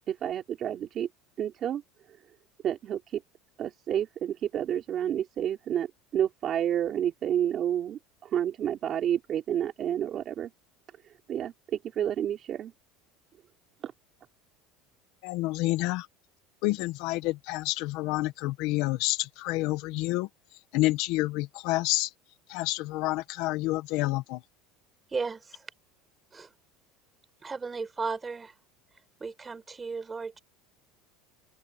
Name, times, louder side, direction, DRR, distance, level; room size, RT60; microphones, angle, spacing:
voice 1, 0.1-1.1 1.4-1.8 2.6-3.2 3.6-10.5 11.3-12.7 13.8-13.9, right 10 dB, 30° right, 4.1 m, -30 dB
voice 2, 15.2-16.1 16.6-20.3 20.7-22.1 22.5-24.4, left 19 dB, 55° left, 1.6 m, -28 dB
voice 3, 25.1-25.7 26.3-26.5 27.4-28.5 29.2-30.4, right 4 dB, 15° right, 6.5 m, -35 dB
open air
cardioid pair, 170°, 0 cm